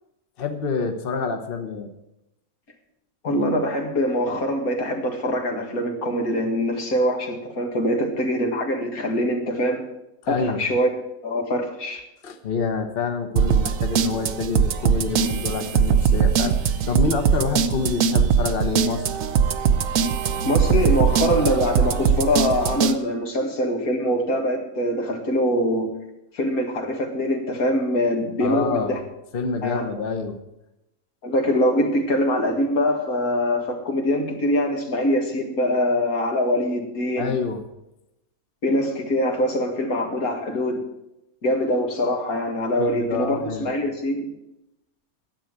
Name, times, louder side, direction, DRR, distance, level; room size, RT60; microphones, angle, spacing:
voice 1, 0.4-1.9 10.2-10.6 12.2-19.1 28.4-29.0 29.3-30.4 37.2-37.6 42.8-43.7, left 5 dB, 45° left, 6 dB, 1.2 m, -27 dB
voice 2, 3.2-9.8 10.3-10.9 11.2-12.0 20.4-25.9 26.3-29.0 29.6-29.9 31.2-37.3 38.6-40.8 41.4-44.3, equal, 85° left, 2 dB, 2.4 m, -23 dB
sound 1, 13.4-23.0, right 7 dB, 70° right, 1.1 m, -21 dB
10.5 x 7.8 x 8.8 m, 0.90 s
omnidirectional pair, 1.5 m